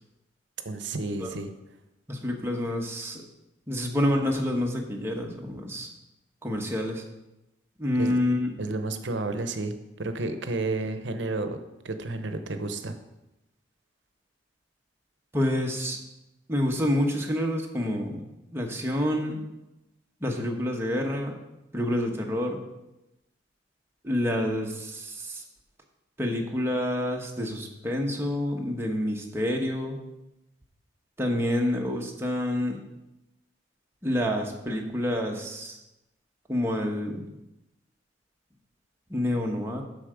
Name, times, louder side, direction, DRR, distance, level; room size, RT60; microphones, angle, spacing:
voice 1, 0.6-1.5 8.0-8.2 8.6-11.6 11.8-13.0, right 2 dB, 65° right, 8 dB, 0.8 m, -31 dB
voice 2, 2.1-3.2 3.7-5.9 6.4-7.0 7.8-8.5 15.3-16.0 16.5-18.2 18.5-19.4 20.2-21.4 21.7-22.6 24.0-25.4 26.2-30.0 31.2-32.8 34.0-35.7 36.5-37.2 39.1-39.8, left 1 dB, 15° right, 1 dB, 1.1 m, -28 dB
8.2 x 6.6 x 5.0 m, 0.95 s
head